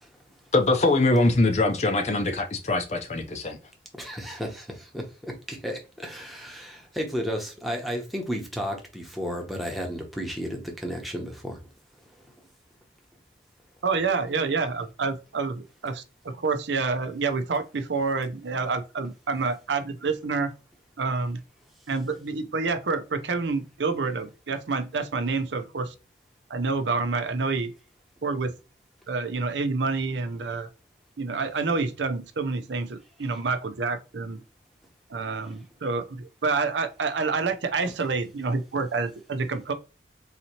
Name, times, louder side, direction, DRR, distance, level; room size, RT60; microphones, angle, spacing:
voice 1, 0.5-3.6, left 2 dB, 40° left, 0.5 m, -22 dB
voice 2, 4.0-11.6, equal, ahead, 0.9 m, -33 dB
voice 3, 13.8-20.5 21.0-21.4 21.9-25.9 26.5-27.7 28.2-28.5 29.1-30.7 31.2-34.4 35.1-39.7, right 4 dB, 80° right, 0.6 m, -28 dB
4.0 x 2.8 x 2.9 m
head